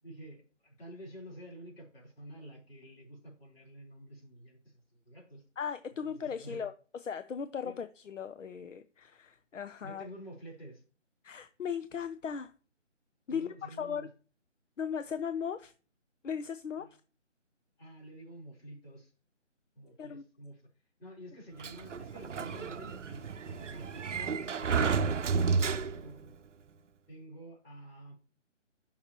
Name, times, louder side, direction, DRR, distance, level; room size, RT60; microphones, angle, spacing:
voice 1, 0.0-5.4 6.0-6.7 7.6-7.8 9.8-10.8 13.3-14.1 16.8-16.9 17.8-19.1 19.8-20.6 21.0-26.4 27.1-28.1, right 1 dB, 50° left, 3.8 m, -49 dB
voice 2, 5.6-10.1 11.2-12.5 13.3-14.1 14.8-15.7 16.2-16.9 20.0-20.2, left 7 dB, 80° left, 0.7 m, -37 dB
Sliding door, 21.6-26.3, right 5 dB, 70° right, 0.6 m, -31 dB
8.6 x 5.8 x 2.9 m
figure-of-eight pair, 165°, 37 cm